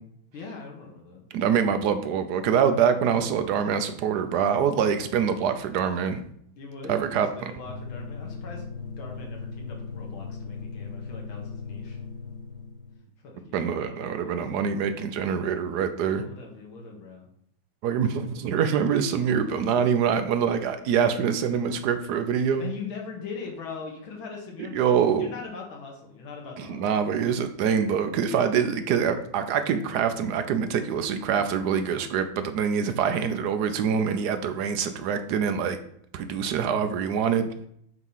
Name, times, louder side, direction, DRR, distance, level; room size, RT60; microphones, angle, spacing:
voice 1, 0.3-1.3 6.5-12.0 13.2-14.4 16.0-17.3 22.6-27.0, left 4 dB, 70° left, 0 dB, 2.1 m, -41 dB
voice 2, 1.3-6.2 6.9-7.5 13.5-16.2 17.8-22.7 24.7-25.3 26.6-35.8 36.1-37.5, right 7 dB, 75° right, 8 dB, 0.9 m, -25 dB
sound 1, 7.6-13.0, left 5 dB, 25° left, 1.4 m, -38 dB
8.3 x 3.0 x 5.5 m, 0.69 s
omnidirectional pair, 2.3 m